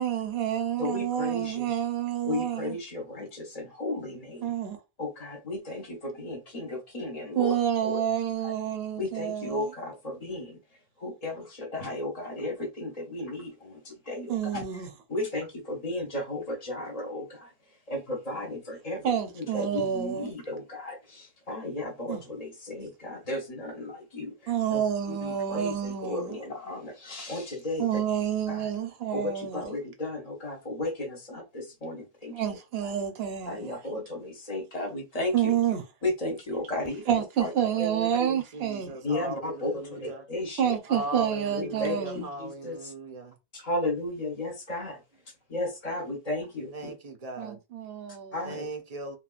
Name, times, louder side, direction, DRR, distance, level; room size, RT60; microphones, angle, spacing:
voice 1, 0.0-2.8 4.4-4.8 7.3-9.7 14.3-14.9 19.0-20.3 22.1-22.2 24.5-26.4 27.8-29.7 32.3-33.8 35.3-35.8 37.1-39.0 40.6-42.3 47.4-48.5, right 9 dB, 70° right, 0.9 m, -29 dB
voice 2, 0.8-1.6 2.3-4.5 5.0-7.5 7.8-7.9 9.0-10.6 11.0-14.6 15.1-17.5 17.9-24.3 24.7-24.8 25.1-27.8 28.5-28.6 29.1-32.3 33.5-35.3 36.0-37.0 37.4-37.5 39.0-40.0 40.3-40.7 41.6-42.8 43.5-45.0 45.5-46.9 48.3-48.7, left 2 dB, 45° left, 0.7 m, -34 dB
voice 3, 37.8-40.3 40.9-43.3 46.7-47.6 48.4-49.2, right 2 dB, 50° right, 0.5 m, -38 dB
3.0 x 2.3 x 2.3 m
omnidirectional pair, 1.1 m